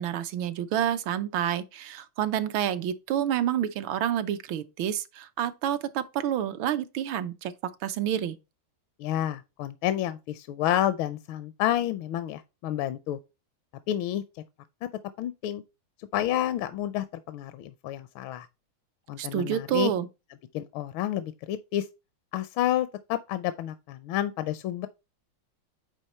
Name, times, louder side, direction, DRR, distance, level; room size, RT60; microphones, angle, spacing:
voice 1, 0.0-7.5 7.8-8.4 19.2-20.1, right 10 dB, 80° right, 1.5 m, -28 dB
voice 2, 9.0-13.2 13.9-14.2 14.8-14.9 15.2-15.6 16.1-18.5 19.1-19.9 20.5-21.9 22.3-24.9, left 12 dB, 80° left, 1.4 m, -29 dB
9.2 x 3.4 x 4.2 m
omnidirectional pair, 2.3 m